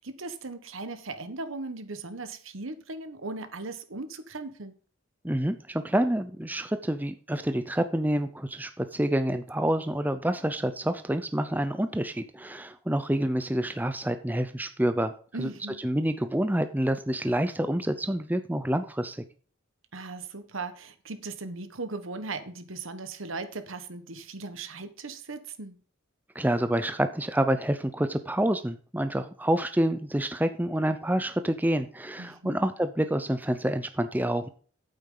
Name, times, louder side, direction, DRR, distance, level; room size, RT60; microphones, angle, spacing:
voice 1, 0.0-4.7 15.3-15.8 19.9-25.8 32.2-32.6, right 3 dB, 75° right, 1.4 m, -38 dB
voice 2, 5.2-15.1 15.4-15.5 15.8-19.2 26.3-34.5, right 1 dB, 10° right, 0.6 m, -27 dB
8.7 x 8.6 x 3.9 m
head